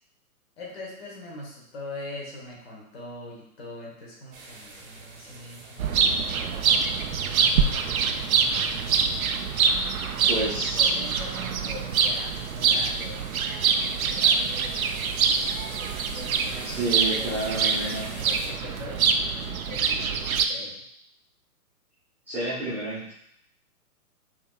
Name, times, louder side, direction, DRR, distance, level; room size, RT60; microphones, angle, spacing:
voice 1, 0.6-9.1 10.2-15.1 16.1-20.8, left 2 dB, 40° left, -3 dB, 1.5 m, -43 dB
sound 1, 4.3-18.5, right 3 dB, 35° right, 1.0 m, -45 dB
sound 2, 5.8-20.5, right 6 dB, 65° right, 0.5 m, -25 dB
voice 2, 10.3-10.8 16.6-18.1 22.3-23.1, right 2 dB, 5° right, -13 dB, 0.9 m, -30 dB
5.7 x 2.9 x 2.4 m, 0.72 s
figure-of-eight pair, 125°, 46 cm